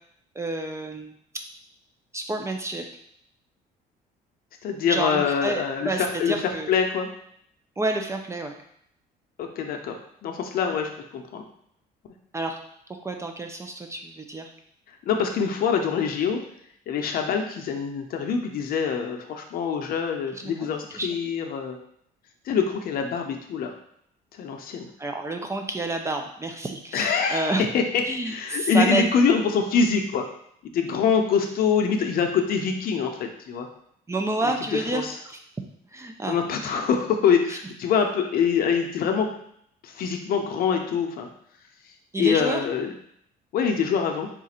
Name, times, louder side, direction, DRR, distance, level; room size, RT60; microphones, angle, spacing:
voice 1, 0.4-1.1 2.1-2.8 4.9-6.7 7.8-8.6 12.3-12.6 13.0-14.5 20.3-20.7 20.9-21.1 25.0-27.6 28.1-29.1 34.1-35.4 35.9-36.4 37.5-37.6 42.1-42.6, right 2 dB, 15° right, 4 dB, 0.4 m, -29 dB
voice 2, 4.6-7.1 9.4-11.4 15.0-16.4 16.9-21.8 22.5-23.7 24.4-24.9 26.9-30.3 30.7-33.7 34.4-35.2 36.3-39.3 39.8-41.3 42.2-42.9 43.5-44.3, left 6 dB, 60° left, 4 dB, 0.6 m, -25 dB
3.7 x 2.4 x 4.2 m, 0.70 s
cardioid pair, 110°, 17 cm